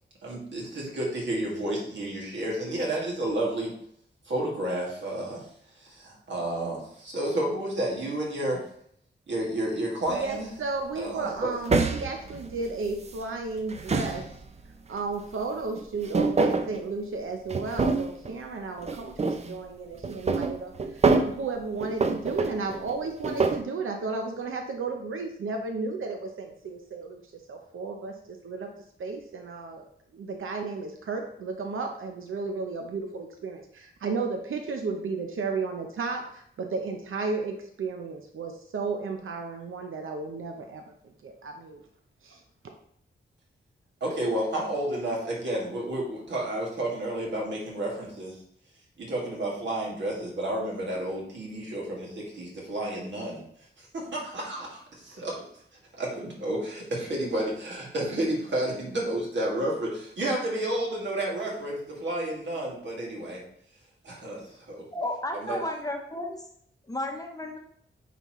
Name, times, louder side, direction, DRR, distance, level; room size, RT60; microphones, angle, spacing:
voice 1, 0.2-3.7 4.3-5.5 5.8-8.6 9.3-10.5 11.0-11.5 44.0-48.4 49.0-53.4 53.8-55.4 55.9-63.4 64.0-64.8 65.4-65.6, right 1 dB, 65° right, -3 dB, 2.2 m, -31 dB
sound 1, 10.1-10.3 11.7-13.2 13.6-14.7 15.8-16.8 17.5-18.3 18.8-19.5 20.0-21.4 21.8-23.6, right 4 dB, 35° right, 0.5 m, -26 dB
voice 2, 10.1-14.2 14.9-27.2 27.5-28.7 29.0-29.8 30.1-40.8 41.2-41.8 42.2-42.4, right 4 dB, 85° right, 3 dB, 0.8 m, -33 dB
voice 3, 64.9-66.4 66.9-67.6, left 1 dB, 15° left, 2 dB, 0.8 m, -32 dB
9.2 x 4.2 x 3.1 m, 0.68 s
wide cardioid pair, 165°, 20 cm